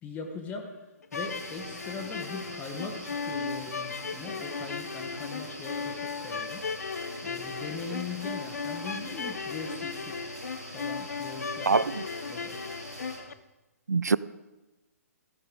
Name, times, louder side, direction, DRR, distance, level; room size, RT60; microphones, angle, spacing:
voice 1, 0.0-0.7 1.1-6.7 7.2-10.3 10.7-11.7 12.3-12.6, left 4 dB, 20° left, 3 dB, 1.0 m, -40 dB
sound 1, 1.0-13.3, left 5 dB, 70° left, 0.6 m, -36 dB
sound 2, 1.1-13.2, equal, 90° left, 4.1 m, -43 dB
voice 2, 11.7-12.0 13.9-14.2, right 4 dB, 80° right, 19 dB, 0.4 m, -24 dB
14.0 x 9.2 x 3.8 m, 1.1 s
figure-of-eight pair, 130°, 9 cm